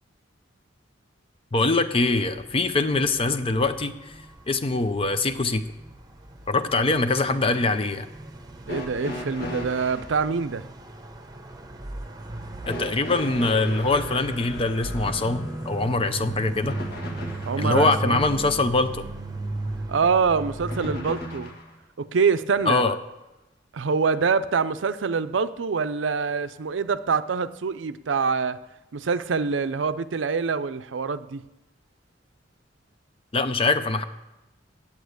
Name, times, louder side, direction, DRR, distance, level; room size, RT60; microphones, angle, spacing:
voice 1, 1.5-4.1 4.5-5.6 6.5-8.1 12.7-16.8 17.6-19.0 22.7-23.0 33.3-34.0, left 3 dB, 30° left, 10 dB, 0.6 m, -23 dB
sound 1, 1.9-21.0, right 2 dB, 20° right, 0.9 m, -37 dB
sound 2, 8.7-10.1 12.6-17.7 20.7-21.7 23.0-23.1 24.1-24.2, left 1 dB, 55° left, 1.6 m, -37 dB
voice 2, 8.7-10.7 17.4-18.2 19.9-21.5 22.0-23.0 23.7-28.6 28.9-31.4, right 5 dB, 90° right, 13 dB, 0.5 m, -25 dB
8.6 x 8.6 x 8.0 m, 0.98 s
head